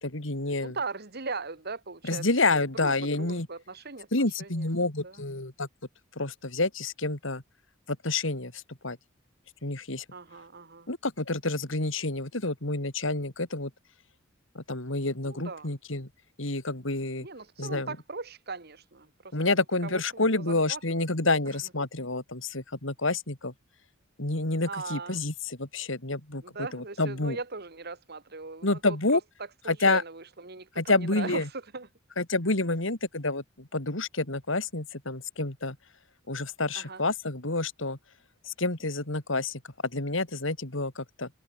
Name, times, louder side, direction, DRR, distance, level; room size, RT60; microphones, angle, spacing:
voice 1, 0.0-0.8 2.0-3.5 4.1-5.7 6.2-7.4 7.9-9.0 9.6-10.0 10.9-13.7 14.5-16.1 16.4-17.3 17.6-18.0 19.3-23.5 24.2-26.4 26.7-27.4 28.6-29.2 29.7-30.0 30.8-31.5 32.2-35.8 36.3-38.0 38.4-41.3, left 2 dB, 65° left, 2.9 m, -29 dB
voice 2, 0.6-2.3 2.5-4.7 5.0-5.2 10.1-10.9 15.3-15.7 17.2-20.0 20.3-21.0 21.5-21.6 24.6-25.2 26.4-29.0 29.6-31.9 36.7-37.0, right 4 dB, 50° right, 2.0 m, -39 dB
head